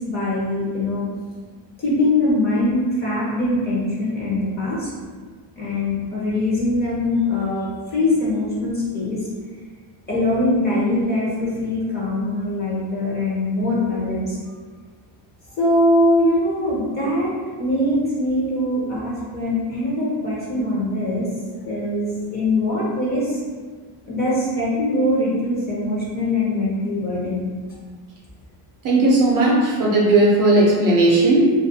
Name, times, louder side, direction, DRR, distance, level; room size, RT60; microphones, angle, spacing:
voice 1, 0.1-1.0 1.8-4.9 5.5-9.2 10.1-14.6 15.6-17.3 17.6-21.3 21.6-23.4 24.0-27.5, left 1 dB, 20° left, -8 dB, 0.7 m, -22 dB
voice 2, 28.8-31.5, right 2 dB, 45° right, -4 dB, 0.5 m, -16 dB
2.4 x 2.2 x 2.6 m, 1.5 s
cardioid pair, 150°, 45 cm